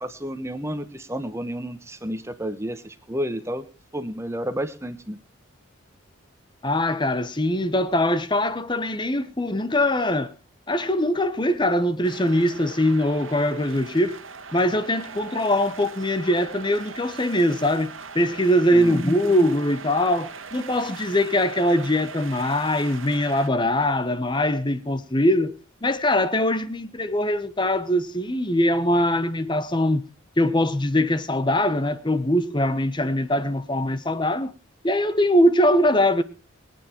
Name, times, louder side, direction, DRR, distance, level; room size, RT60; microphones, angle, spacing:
voice 1, 0.0-3.7 3.9-5.2 18.7-19.0, equal, 15° right, 1.2 m, -31 dB
voice 2, 6.6-10.3 10.7-14.2 14.5-25.5 25.8-30.0 30.4-34.5 34.8-36.2, left 1 dB, 25° left, 1.0 m, -22 dB
sound 1, 12.0-23.5, right 5 dB, 80° right, 1.6 m, -41 dB
23.0 x 9.3 x 4.5 m
head